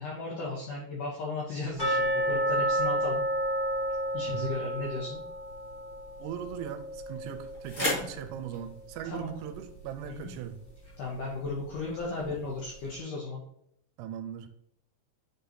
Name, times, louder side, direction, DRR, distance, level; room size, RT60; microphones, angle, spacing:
voice 1, 0.0-3.2 4.1-5.2 7.8-8.0 9.0-9.3 10.1-10.3 11.0-13.4, left 3 dB, 80° left, -4 dB, 1.8 m, -35 dB
sound 1, 1.8-8.6 8.9-9.0 9.5-9.6 10.2-10.3, right 1 dB, 25° left, 1.0 m, -31 dB
sound 2, 5.4-11.3, left 1 dB, 60° left, 0.8 m, -40 dB
voice 2, 6.2-10.6 14.0-14.5, right 10 dB, 85° right, 8 dB, 2.6 m, -39 dB
9.6 x 3.9 x 2.7 m, 0.75 s
omnidirectional pair, 5.1 m